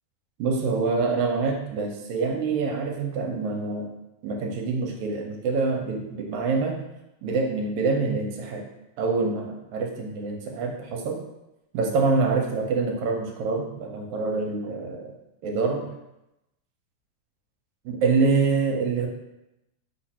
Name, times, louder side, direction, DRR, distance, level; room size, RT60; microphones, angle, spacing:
voice 1, 0.4-3.9 4.2-6.8 7.2-8.6 9.0-11.2 11.7-15.1 15.4-15.9 17.9-19.1, right 4 dB, 75° right, 1 dB, 2.0 m, -26 dB
4.7 x 2.5 x 4.1 m, 0.90 s
omnidirectional pair, 3.5 m